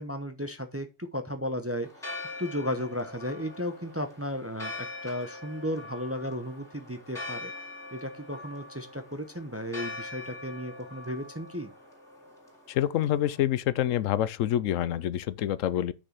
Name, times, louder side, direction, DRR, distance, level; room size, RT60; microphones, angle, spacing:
voice 1, 0.0-1.9 2.4-7.5 7.9-11.7, equal, 15° right, 0.7 m, -34 dB
Church bell, 1.8-13.4, left 2 dB, ahead, 3.1 m, -43 dB
voice 2, 12.7-15.9, left 12 dB, 80° left, 1.0 m, -27 dB
6.3 x 6.2 x 5.9 m
omnidirectional pair, 1.3 m